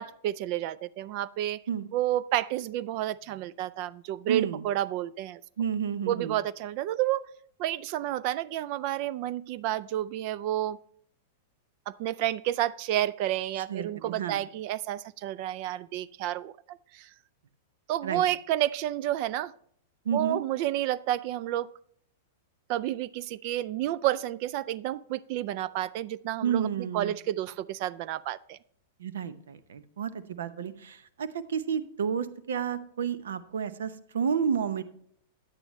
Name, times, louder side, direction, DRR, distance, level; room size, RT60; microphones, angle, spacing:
voice 1, 0.0-1.6 1.9-5.4 6.1-7.2 7.6-10.8 11.9-17.1 17.9-19.5 20.1-21.7 22.7-28.6, right 13 dB, 50° right, 20 dB, 0.3 m, -30 dB
voice 2, 4.3-4.6 5.6-6.4 13.7-14.4 18.0-18.2 20.0-20.4 26.4-27.2 29.0-34.8, right 7 dB, 80° right, 13 dB, 0.7 m, -31 dB
9.6 x 8.8 x 3.1 m, 0.65 s
hypercardioid pair, 120°, 0 cm